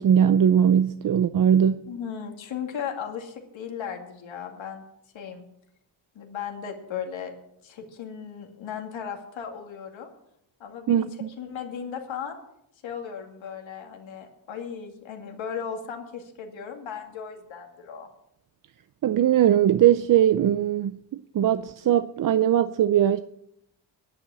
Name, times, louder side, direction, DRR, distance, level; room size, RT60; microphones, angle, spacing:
voice 1, 0.0-1.8 10.9-11.3 19.0-21.0 21.3-23.2, right 10 dB, 45° right, 0.5 m, -20 dB
voice 2, 1.9-4.8 5.1-5.5 6.1-7.3 7.6-10.1 10.6-11.1 11.4-12.4 12.8-18.1, left 7 dB, 75° left, 2.4 m, -36 dB
10.5 x 9.0 x 8.4 m
cardioid pair, 130°, 46 cm